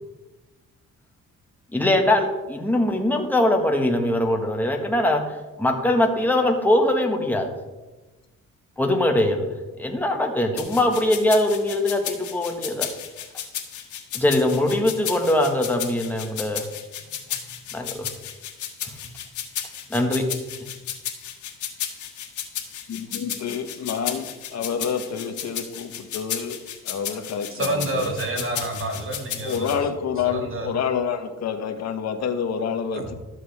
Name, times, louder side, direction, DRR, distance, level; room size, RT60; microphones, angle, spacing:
voice 1, 1.7-5.2 5.6-7.5 8.8-9.4 9.8-12.9 14.1-16.6 17.7-18.1 18.8-18.9 19.9-20.2, left 1 dB, 5° left, 2 dB, 1.5 m, -22 dB
sound 1, 10.6-29.8, left 10 dB, 75° left, 1.6 m, -33 dB
voice 2, 22.9-26.6 26.8-28.1 29.4-33.1, left 7 dB, 60° left, 7 dB, 1.1 m, -28 dB
voice 3, 27.5-29.8 30.2-30.7 32.9-33.1, right 2 dB, 45° right, 2 dB, 2.1 m, -28 dB
12.5 x 7.6 x 3.5 m, 1.2 s
cardioid pair, 90°, 30 cm